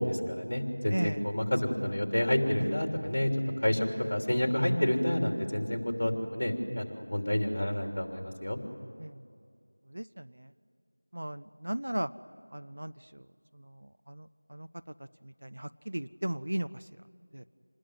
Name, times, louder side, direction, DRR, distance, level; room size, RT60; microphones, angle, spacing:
voice 1, 0.0-3.3 3.6-8.6, left 1 dB, 40° left, 3 dB, 3.2 m, -29 dB
voice 2, 0.9-1.2 2.6-2.7 3.7-3.8 9.0-9.2 9.9-10.5 11.1-12.1 12.5-13.2 14.1-14.7 15.2-16.8 17.3-17.4, right 1 dB, 45° right, 12 dB, 0.6 m, -36 dB
27.0 x 20.5 x 9.5 m, 2.3 s
figure-of-eight pair, 175°, 0 cm